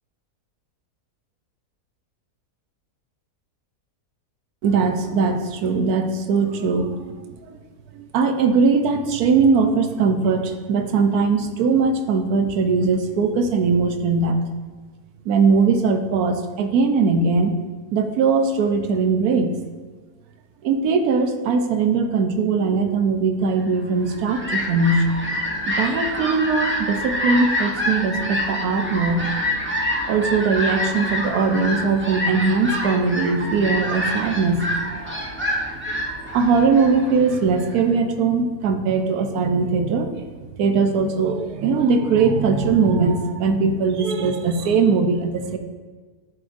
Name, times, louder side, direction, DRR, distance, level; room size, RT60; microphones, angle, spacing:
voice 1, 4.6-7.2 7.5-7.6 7.9-14.5 15.3-17.5 17.9-19.6 20.6-25.1 25.7-29.2 30.1-34.6 36.3-40.2 40.6-45.6, right 4 dB, 75° right, 6 dB, 1.1 m, -20 dB
Fowl, 23.9-37.8, left 1 dB, 15° right, 0.4 m, -27 dB
10.0 x 3.8 x 2.5 m, 1.4 s
omnidirectional pair, 1.7 m